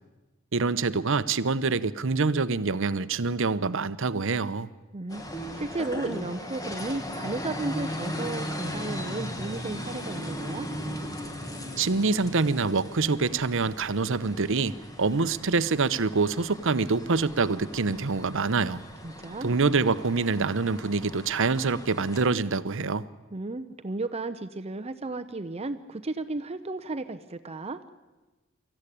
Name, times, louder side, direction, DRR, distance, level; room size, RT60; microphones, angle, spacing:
voice 1, 0.5-4.7 11.8-18.8 19.4-23.1, right 4 dB, 65° right, 14 dB, 0.8 m, -26 dB
voice 2, 4.9-10.7 19.0-19.6 23.3-27.8, right 2 dB, 30° right, 9 dB, 0.7 m, -34 dB
sound 1, 5.1-22.2, equal, 20° left, 1.8 m, -38 dB
24.5 x 14.5 x 10.0 m, 1.2 s
head